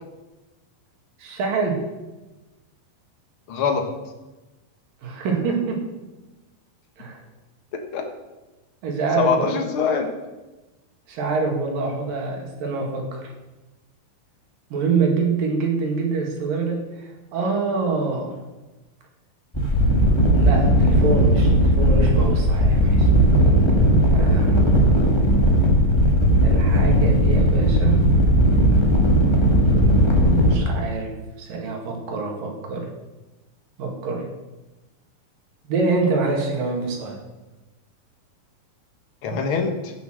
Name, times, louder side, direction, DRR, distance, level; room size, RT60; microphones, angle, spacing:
voice 1, 1.2-1.8 5.0-5.9 7.0-7.2 8.8-9.7 11.1-13.2 14.7-18.4 20.4-23.1 24.1-24.8 26.4-28.0 30.5-32.9 33.8-34.3 35.7-37.2, right 4 dB, 70° right, 1 dB, 3.9 m, -25 dB
voice 2, 3.5-3.9 7.7-8.0 9.2-10.1 39.2-39.9, left 5 dB, 50° left, 4 dB, 1.8 m, -23 dB
sound 1, 19.5-30.6, equal, 15° left, 0.9 m, -17 dB
16.5 x 6.9 x 6.4 m, 1.1 s
omnidirectional pair, 4.2 m